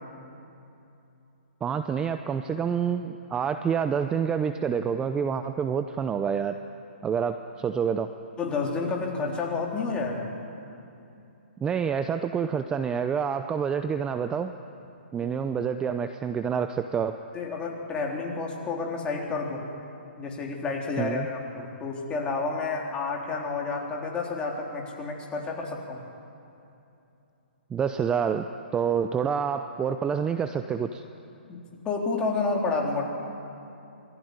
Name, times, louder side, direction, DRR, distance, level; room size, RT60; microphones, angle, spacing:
voice 1, 1.6-6.6 7.0-8.1 11.6-14.6 15.1-17.2 21.0-21.3 27.7-28.5 28.7-31.0, right 7 dB, 15° right, 9 dB, 0.7 m, -27 dB
voice 2, 8.4-10.3 17.3-19.7 20.2-26.0 31.5-31.6 31.8-33.1, left 4 dB, 15° left, -1 dB, 3.9 m, -30 dB
27.5 x 20.0 x 9.7 m, 2.8 s
hypercardioid pair, 140°, 6 cm